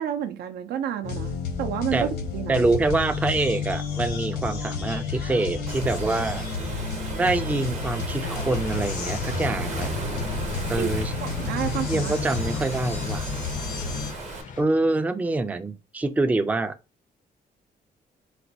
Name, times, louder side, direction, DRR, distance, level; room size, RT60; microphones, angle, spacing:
voice 1, 0.0-2.6 10.8-10.9 11.2-12.1, right 9 dB, 80° right, 0.4 m, -30 dB
sound 1, 1.0-14.1, left 5 dB, 85° left, 1.0 m, -31 dB
voice 2, 2.5-6.4 7.1-9.9 10.7-11.1 11.9-13.3 14.6-16.7, right 2 dB, 10° right, 0.3 m, -25 dB
Waves surf, 5.7-14.4, right 4 dB, 45° right, 0.8 m, -36 dB
sound 2, 8.2-14.6, left 6 dB, 50° left, 0.5 m, -39 dB
4.0 x 2.2 x 2.7 m
cardioid pair, 120°, 16 cm